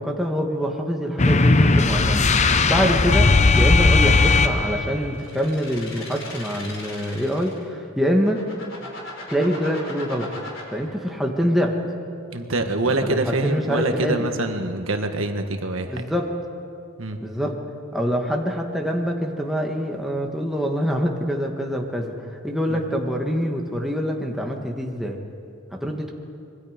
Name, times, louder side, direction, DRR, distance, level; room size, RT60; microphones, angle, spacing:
voice 1, 0.0-8.4 9.3-10.3 10.7-11.8 12.8-14.2 15.9-16.3 17.2-17.6 17.9-22.1 22.4-25.2 25.7-26.1, equal, ahead, 0 dB, 1.6 m, -25 dB
sound 1, 1.2-5.0, left 3 dB, 35° left, 0.7 m, -17 dB
sound 2, 5.1-7.6 8.1-10.6, left 2 dB, 60° left, 4.7 m, -38 dB
voice 2, 12.3-16.0 17.0-17.2 22.7-22.8 25.8-26.0, right 2 dB, 70° right, 5 dB, 1.5 m, -25 dB
26.0 x 23.0 x 5.2 m, 2.5 s
head